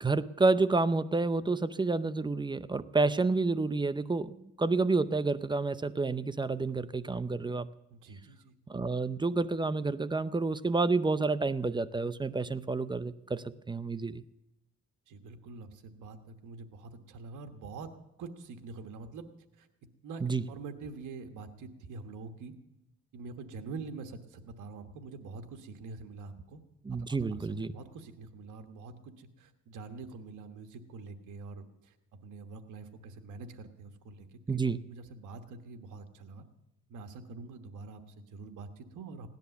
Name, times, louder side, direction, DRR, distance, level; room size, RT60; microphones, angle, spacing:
voice 1, 0.0-7.7 8.7-14.2 20.2-20.4 26.9-27.7 34.5-34.8, right 3 dB, 15° right, 15 dB, 0.6 m, -29 dB
voice 2, 7.9-8.5 15.1-17.9 18.2-19.3 19.5-19.7 20.0-22.5 23.1-26.6 26.9-36.5 36.9-39.3, right 4 dB, 80° right, 6 dB, 1.3 m, -45 dB
17.0 x 10.5 x 7.0 m, 0.90 s
cardioid pair, 90°, 30 cm